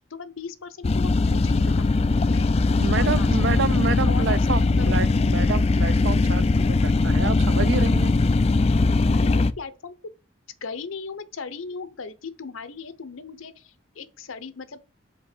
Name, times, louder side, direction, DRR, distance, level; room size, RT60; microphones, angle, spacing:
voice 1, 0.1-1.6 2.2-3.5 3.8-4.9 9.1-9.9 10.6-14.8, left 4 dB, 85° left, 0.8 m, -37 dB
sound 1, 0.8-9.5, left 3 dB, 30° left, 0.3 m, -20 dB
voice 2, 2.8-8.1, right 5 dB, 60° right, 0.5 m, -28 dB
5.2 x 4.3 x 5.1 m
head